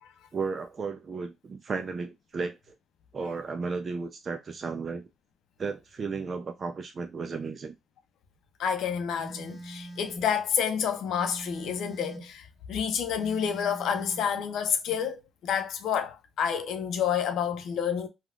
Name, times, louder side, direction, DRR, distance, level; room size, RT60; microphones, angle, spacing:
voice 1, 0.3-2.7 3.1-5.1 5.6-7.7, right 4 dB, 40° right, 0.4 m, -34 dB
voice 2, 8.6-18.1, left 8 dB, 75° left, 0.6 m, -29 dB
Telephone, 9.2-10.3 11.2-12.3 13.2-14.3, right 1 dB, 10° left, 1.0 m, -43 dB
3.4 x 2.3 x 2.3 m
cardioid pair, 90°, 0 cm